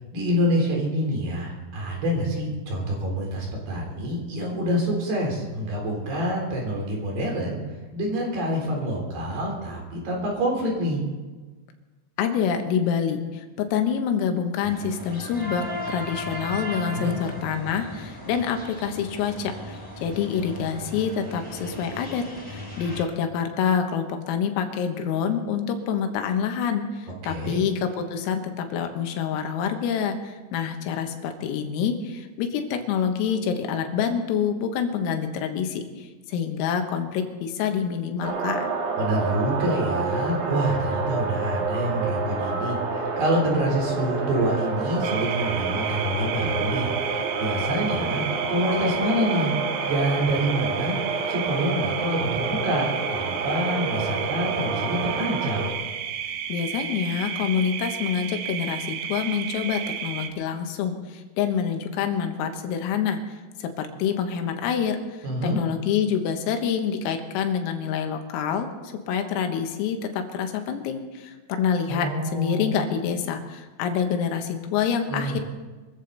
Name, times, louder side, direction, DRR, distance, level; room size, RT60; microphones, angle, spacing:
voice 1, 0.1-7.6 7.9-11.0 16.9-17.2 27.2-27.6 39.0-46.9 47.4-48.2 48.5-49.5 49.8-51.0 51.3-55.7 65.2-65.6 71.9-72.7 75.1-75.4, equal, 55° right, -1 dB, 5.4 m, -26 dB
voice 2, 12.2-27.7 28.1-38.7 56.5-63.2 63.6-65.0 65.4-68.7 69.1-72.1 72.3-75.4, left 7 dB, 85° left, 5 dB, 4.0 m, -27 dB
sound 1, 14.6-23.0, equal, 5° right, 1.9 m, -37 dB
sound 2, 38.2-55.7, right 4 dB, 70° right, 1.6 m, -29 dB
sound 3, 45.0-60.3, right 9 dB, 90° right, 2.1 m, -32 dB
24.0 x 14.5 x 4.1 m, 1.3 s
omnidirectional pair, 6.0 m